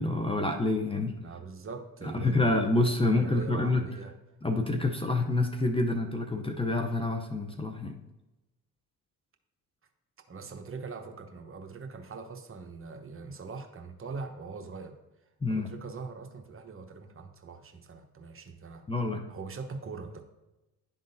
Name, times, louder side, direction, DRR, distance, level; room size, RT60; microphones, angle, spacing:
voice 1, 0.0-1.2 2.0-3.9 4.4-7.9 15.4-15.7 18.9-19.2, left 2 dB, 15° left, 4 dB, 0.6 m, -27 dB
voice 2, 1.2-2.5 3.0-4.1 10.3-15.0 15.5-18.8 19.3-20.2, right 4 dB, 35° right, 5 dB, 1.0 m, -42 dB
11.5 x 3.8 x 2.7 m, 1.0 s
supercardioid pair, 75°, 36 cm